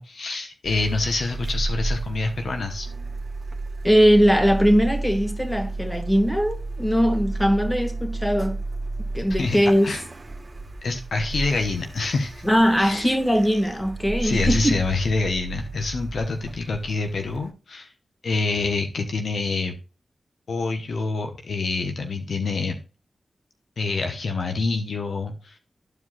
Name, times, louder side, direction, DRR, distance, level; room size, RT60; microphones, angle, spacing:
voice 1, 0.0-2.9 9.4-9.6 9.8-10.0 10.8-12.4 12.8-13.1 14.2-17.9 18.2-19.7 20.5-22.8 23.8-25.5, left 3 dB, 70° left, 1.1 m, -26 dB
Car, 0.6-17.5, right 2 dB, 40° right, 1.5 m, -32 dB
voice 2, 3.8-8.6 9.1-9.9 12.4-14.8, equal, 15° left, 2.0 m, -20 dB
13.0 x 4.9 x 2.4 m
cardioid pair, 40°, 0 cm